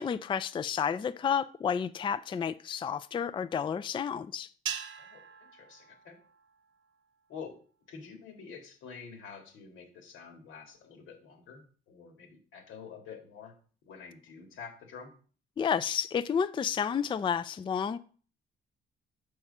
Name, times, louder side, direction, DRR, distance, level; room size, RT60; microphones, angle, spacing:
voice 1, 0.0-4.5 15.6-18.0, left 7 dB, 25° left, 0.3 m, -31 dB
sound 1, 4.7-7.1, right 8 dB, 70° right, 0.8 m, -42 dB
voice 2, 5.0-6.2 7.3-7.6 7.9-13.5 13.8-15.1, left 6 dB, 90° left, 1.9 m, -48 dB
5.7 x 4.8 x 5.4 m
cardioid pair, 90°, 20 cm